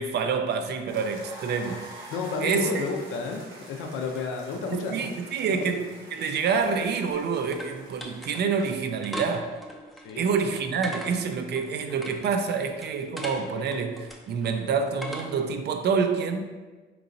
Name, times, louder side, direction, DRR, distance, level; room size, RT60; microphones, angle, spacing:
voice 1, 0.0-2.1 2.4-2.8 4.7-9.5 10.2-16.5, right 5 dB, 60° right, 7 dB, 0.4 m, -27 dB
sound 1, 0.9-9.0, right 1 dB, 90° right, 0.7 m, -47 dB
voice 2, 2.1-5.1 5.5-5.7 10.0-10.3, left 4 dB, 90° left, 3 dB, 0.5 m, -32 dB
sound 2, 6.8-15.6, equal, ahead, 0.4 m, -41 dB
3.8 x 3.0 x 2.6 m, 1.3 s
cardioid pair, 90°, 20 cm